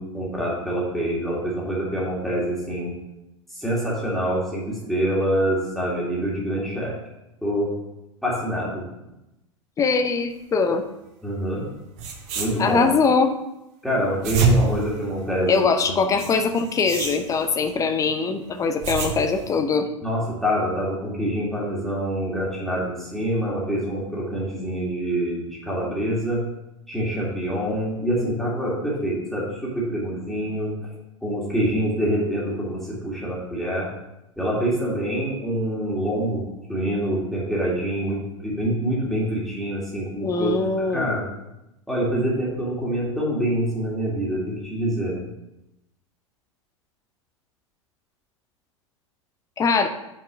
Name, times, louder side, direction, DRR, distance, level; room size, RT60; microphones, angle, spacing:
voice 1, 0.0-2.9 3.6-6.9 7.4-7.7 8.2-8.8 11.2-11.6 12.4-12.9 13.8-15.6 15.9-16.2 20.0-26.5 26.9-30.7 31.2-33.9 34.4-36.4 36.7-41.2 41.9-45.2, equal, ahead, -6 dB, 2.2 m, -26 dB
voice 2, 9.8-10.8 12.6-13.3 15.5-19.9 40.2-41.1 49.6-49.9, left 4 dB, 20° left, 7 dB, 0.7 m, -22 dB
sound 1, 11.7-11.8 12.0-13.0 14.0-15.6 16.2-17.7 18.5-19.6, right 3 dB, 45° right, 1.2 m, -27 dB
6.0 x 4.6 x 6.0 m, 0.90 s
figure-of-eight pair, 90°, 16 cm